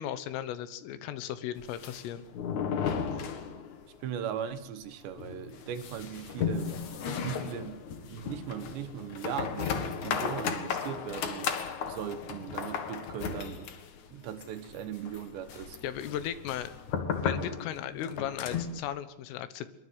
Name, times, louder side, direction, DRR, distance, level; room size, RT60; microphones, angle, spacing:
voice 1, 0.0-2.3 15.8-16.7 17.2-19.7, left 11 dB, 85° left, 13 dB, 3.9 m, -36 dB
sound 1, 1.6-4.0 4.2-4.3 4.6-4.7 5.2-18.8, left 6 dB, 55° left, 2.2 m, -35 dB
voice 2, 4.0-6.7 7.2-7.8 8.1-11.5 11.9-13.7 14.1-15.8, right 9 dB, 70° right, 10 dB, 3.1 m, -38 dB
22.5 x 22.5 x 7.9 m, 0.88 s
omnidirectional pair, 5.7 m